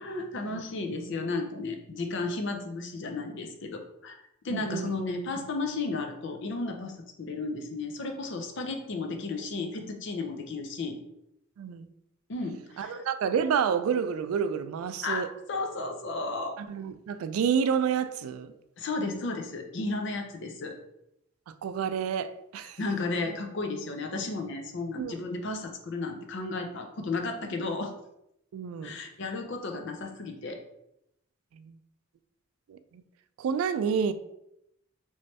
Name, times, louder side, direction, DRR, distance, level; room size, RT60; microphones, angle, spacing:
voice 1, 0.0-11.0 12.3-13.0 15.0-16.6 18.8-20.8 22.8-27.9 28.8-30.6, left 3 dB, 60° left, 5 dB, 0.5 m, -33 dB
voice 2, 4.5-4.9 11.6-11.9 12.8-15.3 16.6-18.5 21.6-22.8 25.0-25.1 28.5-28.9 31.5-31.7 32.7-33.0 33.4-34.1, right 7 dB, 85° right, 13 dB, 0.3 m, -29 dB
3.2 x 3.1 x 2.8 m, 0.81 s
head